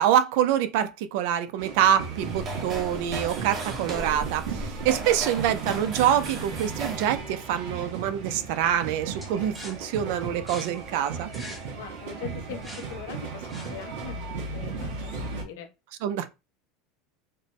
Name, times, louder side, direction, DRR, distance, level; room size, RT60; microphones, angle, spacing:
voice 1, 0.0-11.3 16.0-16.3, right 10 dB, 65° right, 0.4 m, -25 dB
sound 1, 1.6-15.4, right 5 dB, 80° right, 2.1 m, -36 dB
sound 2, 1.9-7.2, right 2 dB, 30° right, 1.0 m, -36 dB
sound 3, 9.2-14.1, left 1 dB, ahead, 0.8 m, -45 dB
voice 2, 11.8-15.1 15.4-15.7, left 9 dB, 90° left, 0.8 m, -41 dB
4.2 x 2.1 x 3.1 m
supercardioid pair, 150°, 0 cm